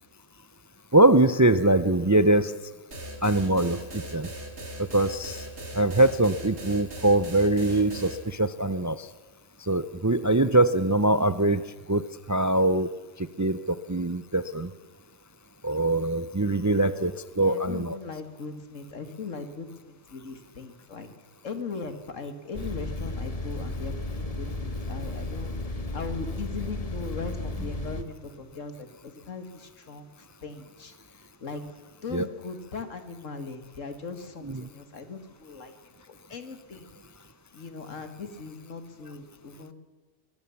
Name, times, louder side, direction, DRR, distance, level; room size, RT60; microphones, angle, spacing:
voice 1, 0.9-2.5 3.2-4.3 4.8-5.5 5.7-9.1 9.6-11.6 11.9-12.9 13.2-14.7 15.6-18.0 32.1-32.3 34.5-34.7, right 2 dB, 25° right, 14 dB, 0.3 m, -23 dB
sound 1, 2.9-8.2, right 1 dB, 60° right, 2.9 m, -39 dB
voice 2, 17.4-21.1 21.4-31.6 32.0-35.7 36.1-36.9 37.5-39.7, left 4 dB, 90° left, 9 dB, 2.2 m, -39 dB
sound 2, 22.5-28.0, left 2 dB, 30° left, 1.2 m, -33 dB
23.0 x 16.5 x 7.1 m, 1.3 s
omnidirectional pair, 1.3 m